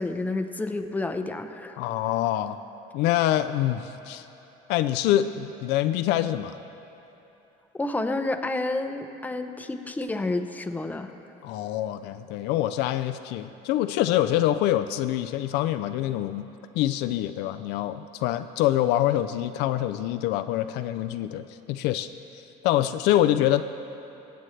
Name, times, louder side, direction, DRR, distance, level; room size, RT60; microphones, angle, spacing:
voice 1, 0.0-1.8 7.7-11.1, left 2 dB, 10° left, 7 dB, 0.7 m, -30 dB
voice 2, 1.8-2.6 2.9-4.2 4.7-6.6 11.4-16.5 16.7-22.1 22.6-23.6, left 13 dB, 75° left, 10 dB, 0.4 m, -25 dB
22.0 x 8.1 x 3.2 m, 3.0 s
cardioid pair, 105°, 17 cm